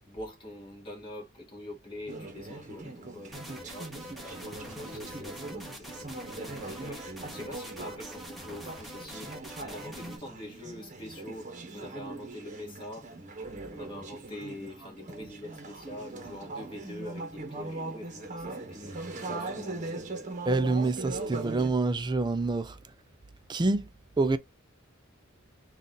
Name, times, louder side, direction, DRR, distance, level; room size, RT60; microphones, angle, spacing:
voice 1, 0.1-7.1 7.3-13.1 13.6-20.1, left 1 dB, 25° left, 1.7 m, -45 dB
Conversation / Chatter, 2.1-21.7, right 2 dB, 35° right, 0.9 m, -40 dB
sound 1, 3.3-10.2, equal, ahead, 0.9 m, -45 dB
voice 2, 20.5-22.8 23.5-23.9 24.2-24.4, right 3 dB, 20° right, 0.3 m, -27 dB
3.9 x 2.4 x 3.8 m
head